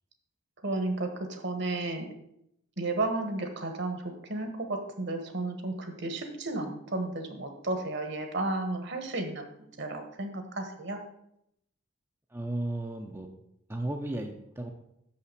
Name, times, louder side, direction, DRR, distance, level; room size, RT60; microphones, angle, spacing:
voice 1, 0.6-2.1 2.8-11.0, right 2 dB, 55° right, 6 dB, 1.2 m, -33 dB
voice 2, 12.3-13.3 13.7-14.7, right 1 dB, 10° right, 2 dB, 0.6 m, -34 dB
6.7 x 5.6 x 6.7 m, 0.77 s
head